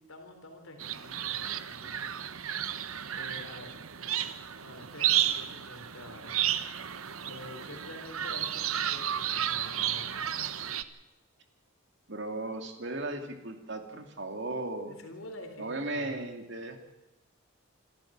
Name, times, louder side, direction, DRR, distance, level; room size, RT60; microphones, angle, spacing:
voice 1, 0.0-2.1 3.1-3.7 4.6-6.5 7.2-10.2 14.9-16.1, left 1 dB, 75° left, 5 dB, 3.8 m, -47 dB
sound 1, 0.8-10.8, right 10 dB, 80° right, 1.0 m, -32 dB
voice 2, 12.1-15.0 15.6-16.8, right 2 dB, 55° right, 5 dB, 2.6 m, -36 dB
26.5 x 13.0 x 7.5 m, 1.1 s
head